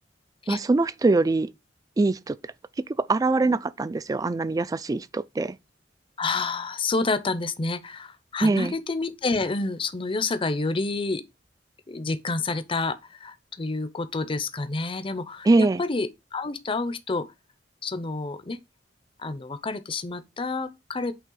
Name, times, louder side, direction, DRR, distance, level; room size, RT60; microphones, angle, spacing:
voice 1, 0.5-1.5 2.0-2.4 3.1-5.6 8.4-8.7 15.5-15.8, right 3 dB, 20° right, 0.3 m, -23 dB
voice 2, 6.2-11.2 11.9-17.3 17.8-18.6 19.2-21.1, left 3 dB, 30° left, 0.6 m, -29 dB
8.2 x 3.3 x 3.8 m
head